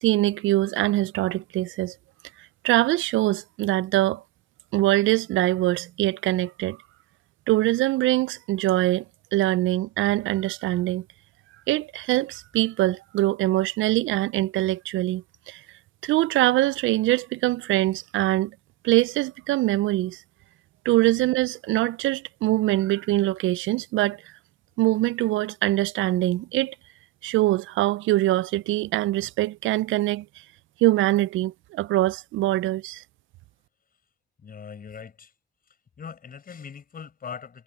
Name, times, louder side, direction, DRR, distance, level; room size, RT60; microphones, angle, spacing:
voice 1, 0.0-1.9 2.6-4.2 4.7-6.8 7.5-9.0 9.3-11.0 11.7-15.6 16.0-18.6 18.8-20.2 20.9-24.2 24.8-26.7 27.2-30.3 30.8-33.0, right 16 dB, 80° right, 0.4 m, -23 dB
voice 2, 34.4-35.3 35.7-37.6, left 6 dB, 45° left, 7.3 m, -41 dB
cardioid pair, 90°, 20 cm